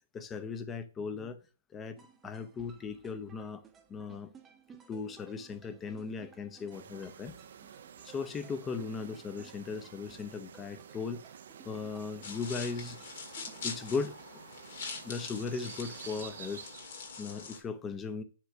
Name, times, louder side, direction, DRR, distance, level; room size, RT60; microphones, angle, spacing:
voice 1, 0.1-1.4 1.7-2.0 2.2-3.6 3.9-4.3 4.9-7.3 8.0-11.2 11.7-13.0 13.6-14.2 15.0-16.7 17.2-18.2, left 5 dB, 15° left, 0.7 m, -37 dB
sound 1, 2.0-14.0, right 6 dB, 15° right, 0.8 m, -58 dB
sound 2, 6.7-17.2, right 8 dB, 70° right, 0.5 m, -51 dB
sound 3, 12.2-17.6, left 5 dB, 60° left, 1.8 m, -43 dB
7.4 x 3.2 x 4.8 m
hypercardioid pair, 135°, 0 cm